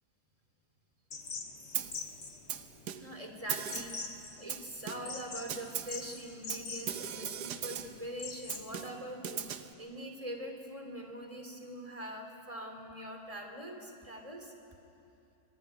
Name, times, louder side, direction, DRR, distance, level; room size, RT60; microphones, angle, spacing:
sound 1, 1.1-8.9, left 4 dB, 80° left, 2.5 m, -44 dB
Snare drum, 1.7-2.1 2.5-3.2 3.5-4.1 4.5-5.2 5.5-6.0 6.5-8.0 8.5-9.7, right 9 dB, 80° right, 1.6 m, -39 dB
voice 1, 3.0-14.5, equal, 20° right, 3 dB, 3.1 m, -43 dB
24.5 x 20.5 x 9.6 m, 2.7 s
omnidirectional pair, 1.8 m